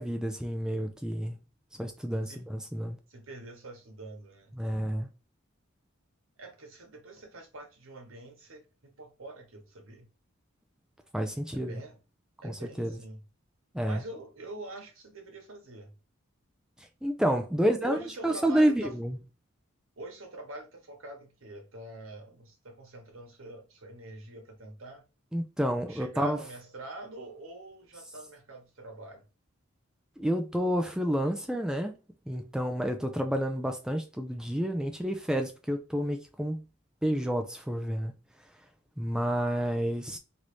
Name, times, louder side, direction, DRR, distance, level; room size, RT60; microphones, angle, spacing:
voice 1, 0.0-1.4 1.8-3.0 4.6-5.1 11.1-11.8 12.4-13.0 13.7-14.0 17.0-18.0 18.2-19.2 25.3-26.4 30.2-31.9 32.3-36.6 37.0-38.1 39.0-40.2, equal, 5° right, 0.3 m, -29 dB
voice 2, 3.1-4.6 6.4-10.1 11.5-12.0 12.4-13.2 13.8-15.9 17.6-18.9 20.0-25.0 25.9-29.2, right 2 dB, 75° right, 1.1 m, -45 dB
3.1 x 2.6 x 3.1 m
head